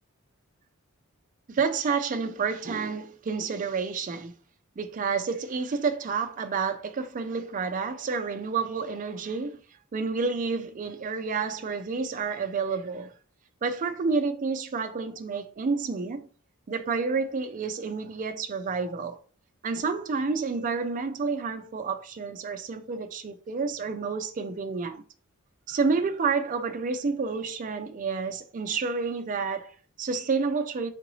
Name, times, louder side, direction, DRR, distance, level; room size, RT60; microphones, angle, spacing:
voice 1, 1.5-4.3 4.8-9.6 9.9-13.1 13.6-16.3 16.7-19.2 19.6-25.0 25.7-30.9, right 4 dB, 40° right, 0.4 m, -29 dB
3.8 x 2.5 x 3.0 m
head